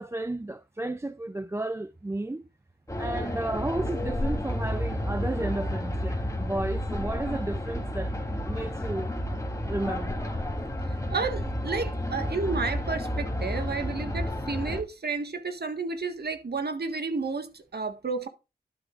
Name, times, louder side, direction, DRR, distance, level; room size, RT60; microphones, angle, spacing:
voice 1, 0.0-2.5 3.0-8.2 8.5-9.1 9.7-10.2, right 2 dB, 15° right, 0.5 m, -33 dB
sound 1, 2.9-14.8, left 1 dB, 20° left, 3.3 m, -31 dB
voice 2, 11.1-18.3, right 4 dB, 75° right, 1.6 m, -31 dB
12.0 x 8.1 x 2.5 m
wide cardioid pair, 65°, 17 cm